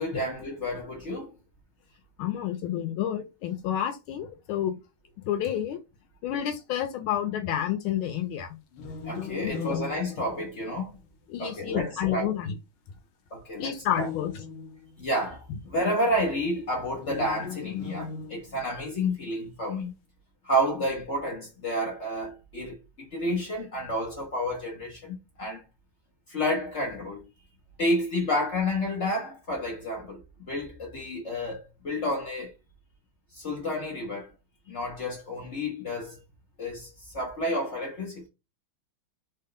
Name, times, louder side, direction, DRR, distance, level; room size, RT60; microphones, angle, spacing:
voice 1, 0.0-1.3 9.0-10.9 11.4-12.3 13.3-14.1 15.0-19.9 20.4-25.6 26.3-27.3 27.8-30.2 30.5-32.5 33.3-34.3 34.7-36.2 36.6-36.9 37.1-38.3, equal, 55° left, 0.8 m, -30 dB
voice 2, 2.2-4.7 5.3-5.8 6.2-8.6 9.4-9.8 11.3-12.6 13.6-14.3, left 10 dB, 90° left, 1.5 m, -29 dB
sound 1, 8.7-11.1 13.8-15.1 17.0-18.9, left 6 dB, 70° left, 1.4 m, -38 dB
3.6 x 2.2 x 3.7 m
omnidirectional pair, 2.3 m